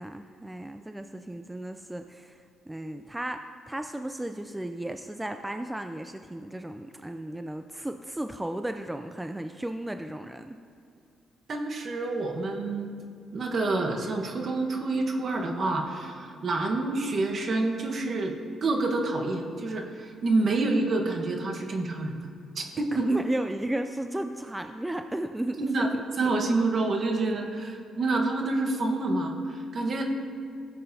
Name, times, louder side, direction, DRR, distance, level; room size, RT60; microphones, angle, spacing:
voice 1, 0.0-10.6 22.9-26.0 26.4-26.6, right 1 dB, 10° right, 7 dB, 0.3 m, -34 dB
voice 2, 11.5-12.9 13.3-18.3 18.6-22.3 22.5-23.1 25.6-25.9 26.2-30.0, right 2 dB, 50° right, 2 dB, 1.2 m, -28 dB
15.5 x 7.6 x 2.7 m, 2.4 s
cardioid pair, 90°, 0 cm